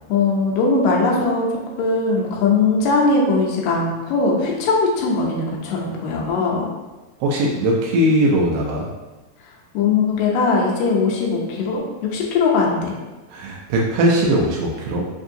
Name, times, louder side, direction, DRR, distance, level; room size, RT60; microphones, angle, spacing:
voice 1, 0.1-1.5 1.8-6.7 9.7-12.9, left 4 dB, 80° left, -2 dB, 2.4 m, -20 dB
voice 2, 7.2-8.9 13.3-15.0, right 1 dB, 90° right, -2 dB, 2.4 m, -19 dB
5.9 x 2.6 x 2.6 m, 1.2 s
omnidirectional pair, 3.9 m